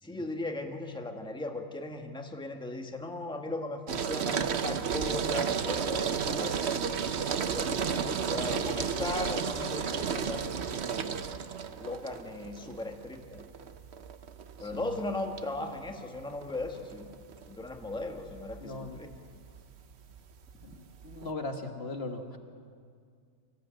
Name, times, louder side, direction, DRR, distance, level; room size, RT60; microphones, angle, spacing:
voice 1, 0.0-6.6 7.5-10.4 10.9-11.3 11.8-13.4 14.6-17.1 17.5-19.1, left 2 dB, 5° left, 3 dB, 1.5 m, -37 dB
sound 1, 3.9-21.3, right 6 dB, 55° right, 1.1 m, -33 dB
voice 2, 14.6-14.9 18.6-19.0 20.6-22.4, left 2 dB, 50° left, 5 dB, 1.6 m, -39 dB
24.5 x 15.5 x 8.8 m, 2.2 s
omnidirectional pair, 1.4 m